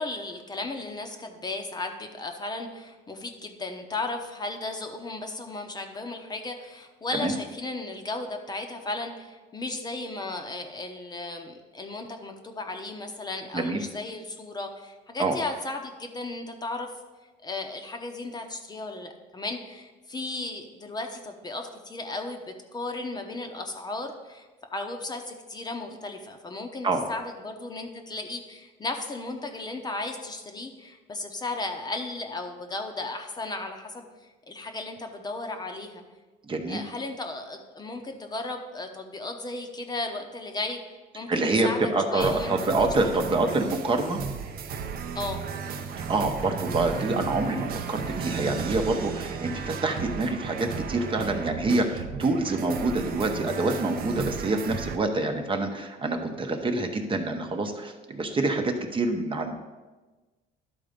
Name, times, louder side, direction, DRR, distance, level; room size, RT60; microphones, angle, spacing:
voice 1, 0.0-16.9 17.4-34.1 34.5-36.0 36.7-41.8 42.1-42.5 45.1-45.4, left 2 dB, 25° left, 4 dB, 0.8 m, -35 dB
voice 2, 36.5-36.8 41.3-44.2 46.0-59.6, right 2 dB, 30° right, 4 dB, 0.9 m, -26 dB
sound 1, 42.2-55.0, right 6 dB, 65° right, 0.7 m, -34 dB
11.5 x 3.9 x 5.1 m, 1.2 s
cardioid pair, 110°, 17 cm